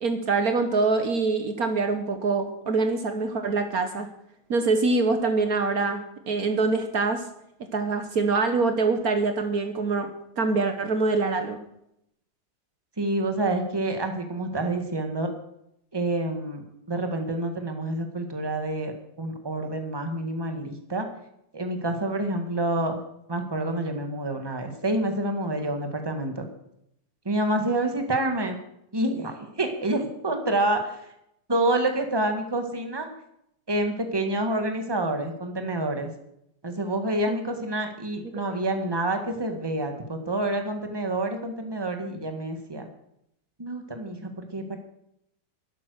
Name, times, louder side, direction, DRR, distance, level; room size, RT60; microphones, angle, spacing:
voice 1, 0.0-4.1 4.5-7.3 7.7-10.1 10.4-11.6 37.3-37.4, right 3 dB, 60° right, 8 dB, 1.5 m, -24 dB
voice 2, 13.0-15.3 15.9-21.1 21.5-23.0 23.3-26.5 27.3-28.6 28.9-31.1 31.5-33.1 33.7-36.1 36.6-42.9 43.6-44.8, right 1 dB, 15° right, 6 dB, 1.7 m, -28 dB
12.0 x 11.5 x 6.5 m, 0.77 s
omnidirectional pair, 1.8 m